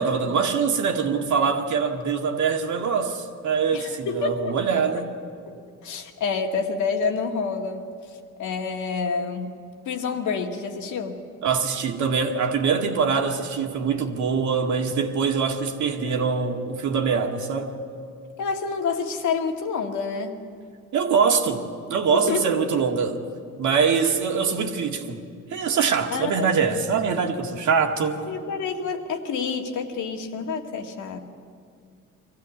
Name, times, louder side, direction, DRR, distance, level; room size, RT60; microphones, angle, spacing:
voice 1, 0.0-5.1 11.4-17.8 20.9-23.2 23.6-25.2 25.5-28.2, right 6 dB, 70° right, 2.0 m, -23 dB
voice 2, 3.7-4.6 5.5-5.6 5.8-7.9 8.4-9.6 9.9-11.2 18.4-20.4 22.1-22.5 26.1-26.5 28.3-31.2, left 5 dB, 75° left, 2.1 m, -28 dB
23.0 x 15.5 x 8.4 m
cardioid pair, 90°, 30 cm